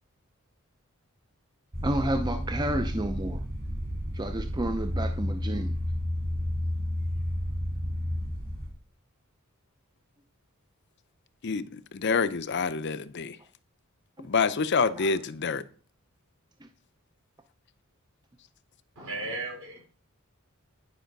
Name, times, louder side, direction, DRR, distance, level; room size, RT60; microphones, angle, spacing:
sound 1, 1.7-8.7, equal, 40° right, 3.1 m, -31 dB
voice 1, 1.8-3.4 4.1-5.8 15.0-15.1 19.0-19.1, right 1 dB, 20° right, 0.6 m, -31 dB
voice 2, 11.4-13.4 14.2-15.6, left 5 dB, 55° left, 0.6 m, -27 dB
voice 3, 19.0-19.8, right 2 dB, 70° right, 5.1 m, -35 dB
10.5 x 5.5 x 5.3 m
head